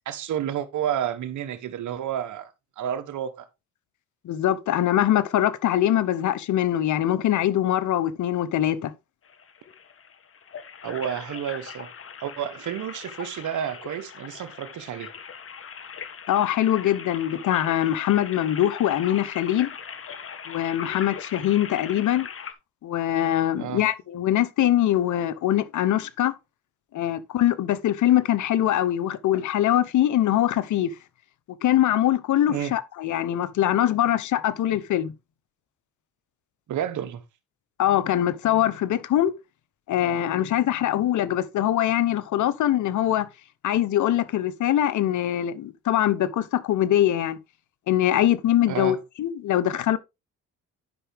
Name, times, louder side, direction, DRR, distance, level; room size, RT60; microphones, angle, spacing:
voice 1, 0.0-3.5 10.8-11.9 12.2-15.1 23.6-23.8 32.5-32.7 36.7-37.2 48.7-49.0, right 9 dB, 65° right, 1.3 m, -30 dB
voice 2, 4.2-8.9 16.3-19.7 20.5-22.3 22.8-26.3 26.9-30.9 31.6-35.1 37.8-39.3 39.9-43.3 43.6-47.4 47.9-50.0, left 12 dB, 65° left, 1.0 m, -23 dB
sound 1, 9.2-22.5, left 7 dB, 45° left, 1.4 m, -40 dB
11.0 x 5.7 x 3.6 m
supercardioid pair, 75°, 32 cm